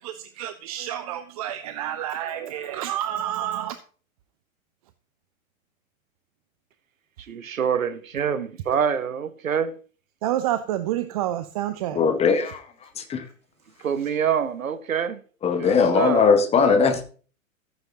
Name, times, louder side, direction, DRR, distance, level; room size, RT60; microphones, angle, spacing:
voice 1, 0.0-3.8 10.2-12.0 13.8-13.9 16.6-16.9, right 12 dB, 25° right, 0.5 m, -29 dB
voice 2, 7.3-9.7 13.8-15.2 15.6-16.3, right 7 dB, 70° right, 1.1 m, -26 dB
voice 3, 12.0-12.6 13.0-13.2 15.4-17.0, left 5 dB, 15° left, 1.0 m, -19 dB
14.5 x 9.3 x 2.8 m
figure-of-eight pair, 110°, 42 cm